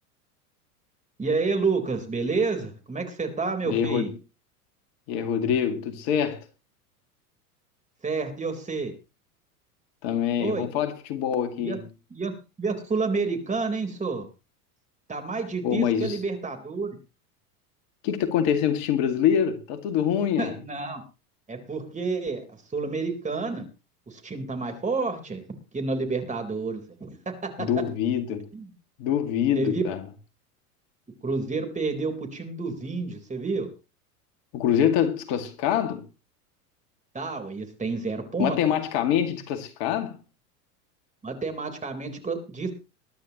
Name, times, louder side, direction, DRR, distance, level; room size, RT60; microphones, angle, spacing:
voice 1, 1.2-4.1 8.0-8.9 10.4-10.7 11.6-11.8 12.1-12.3 12.6-14.3 15.1-17.0 20.4-21.0 21.5-22.4 22.7-23.7 24.1-25.4 25.7-27.7 28.5-28.7 29.6-29.8 31.2-33.7 37.1-38.6 41.2-42.7, right 4 dB, 15° right, 3.9 m, -29 dB
voice 2, 3.6-4.1 5.1-6.4 10.0-11.8 15.6-16.2 18.0-20.5 27.6-28.5 29.0-30.0 34.5-36.1 38.4-40.2, left 9 dB, 55° left, 2.2 m, -25 dB
22.0 x 11.5 x 3.0 m
hypercardioid pair, 95°, 46 cm